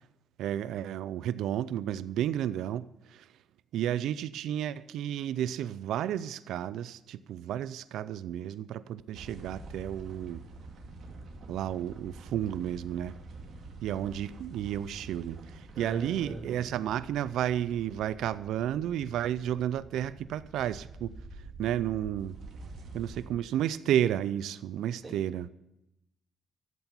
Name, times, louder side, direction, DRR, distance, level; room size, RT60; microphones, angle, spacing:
voice 1, 0.4-3.3 3.7-10.4 11.5-13.1 13.8-21.1 21.6-22.4 22.9-25.5, right 11 dB, 80° right, 0.4 m, -32 dB
sound 1, 9.1-23.3, right 2 dB, 65° right, 2.2 m, -47 dB
voice 2, 15.7-16.7 25.0-25.2, right 3 dB, 35° right, 2.9 m, -41 dB
13.0 x 8.1 x 7.0 m
cardioid pair, 90°, 0 cm